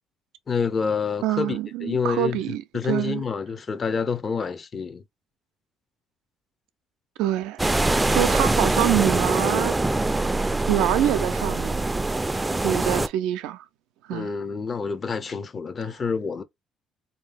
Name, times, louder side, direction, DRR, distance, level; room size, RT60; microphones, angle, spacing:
voice 1, 0.5-2.4 2.7-5.0 14.1-16.4, left 5 dB, 40° left, 0.6 m, -27 dB
voice 2, 1.2-3.2 7.2-7.6 8.1-9.8 10.7-11.8 12.6-13.6 14.1-14.3, right 13 dB, 80° right, 0.4 m, -25 dB
sound 1, 7.6-13.1, right 2 dB, 15° right, 0.4 m, -23 dB
3.2 x 2.7 x 3.5 m
supercardioid pair, 65°, 0 cm